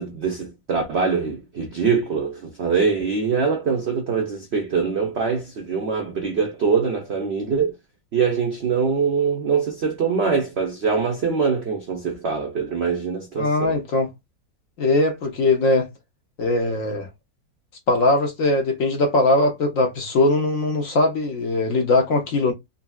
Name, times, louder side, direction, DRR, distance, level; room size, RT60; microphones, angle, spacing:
voice 1, 0.0-7.8 8.1-13.8, right 5 dB, 75° right, 0.6 m, -23 dB
voice 2, 13.4-14.1 14.8-15.9 16.4-17.1 17.9-22.5, left 2 dB, 60° left, 1.0 m, -20 dB
3.9 x 2.1 x 2.3 m
omnidirectional pair, 1.9 m